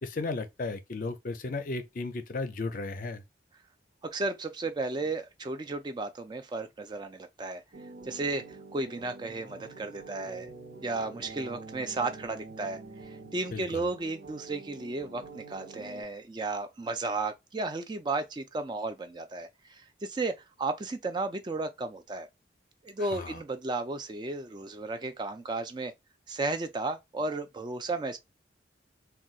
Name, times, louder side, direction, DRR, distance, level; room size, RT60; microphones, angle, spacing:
voice 1, 0.0-3.2 13.5-13.9 23.0-23.4, left 3 dB, 45° left, 0.4 m, -35 dB
voice 2, 4.0-7.6 8.0-8.4 8.7-10.5 10.8-22.3 22.8-25.9 26.3-28.2, right 3 dB, 25° right, 0.3 m, -34 dB
sound 1, 7.7-16.0, right 3 dB, 60° right, 1.0 m, -46 dB
3.9 x 2.2 x 2.3 m
head